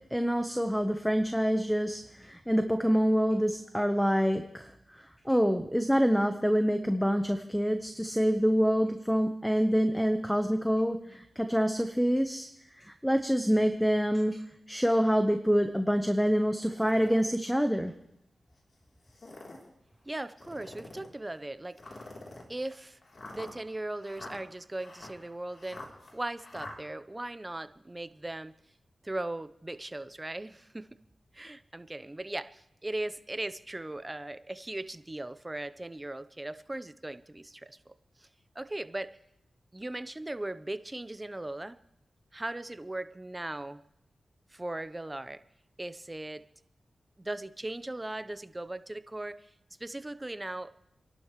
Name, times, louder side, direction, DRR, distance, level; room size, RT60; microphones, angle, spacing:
voice 1, 0.1-12.5 12.8-14.4 14.7-17.9, equal, ahead, 7 dB, 1.0 m, -26 dB
sound 1, 16.5-17.2 17.9-18.0 19.0-19.7 20.4-21.1 21.8-26.8, left 2 dB, 60° left, 3.4 m, -47 dB
voice 2, 20.0-21.8 22.5-23.0 23.3-25.8 26.1-28.5 29.0-31.0 31.3-37.8 38.5-39.2 39.7-41.8 42.3-43.8 44.5-45.4 45.8-46.4 47.2-49.4 49.8-50.7, right 1 dB, 20° right, 12 dB, 0.8 m, -38 dB
29.5 x 11.5 x 3.2 m, 0.80 s
cardioid pair, 60°, 0 cm